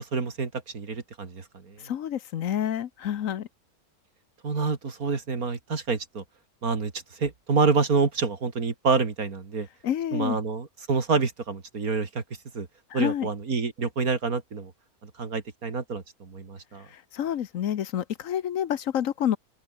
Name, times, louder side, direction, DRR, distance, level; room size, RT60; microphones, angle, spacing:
voice 1, 0.0-1.7 4.4-6.2 6.6-6.9 7.2-9.7 10.1-12.2 12.5-12.7 12.9-14.7 15.0-16.9, right 4 dB, 80° right, 3.1 m, -27 dB
voice 2, 1.8-3.5 9.8-10.4 12.9-13.3 16.9-19.4, left 10 dB, 65° left, 1.2 m, -28 dB
open air
omnidirectional pair, 1.5 m